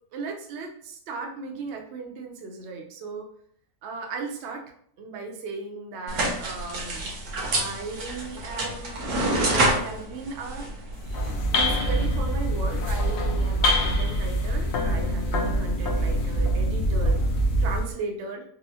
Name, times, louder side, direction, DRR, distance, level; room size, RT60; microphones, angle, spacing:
voice 1, 0.1-3.3 3.8-4.6 5.0-7.2 7.5-10.7 11.3-17.2 17.6-18.4, right 4 dB, 65° right, 2 dB, 0.7 m, -36 dB
sound 1, 6.1-11.3, right 1 dB, 80° right, 1.3 m, -28 dB
sound 2, 10.9-17.9, equal, 65° left, 0.7 m, -24 dB
4.0 x 2.0 x 2.7 m, 0.63 s
omnidirectional pair, 1.6 m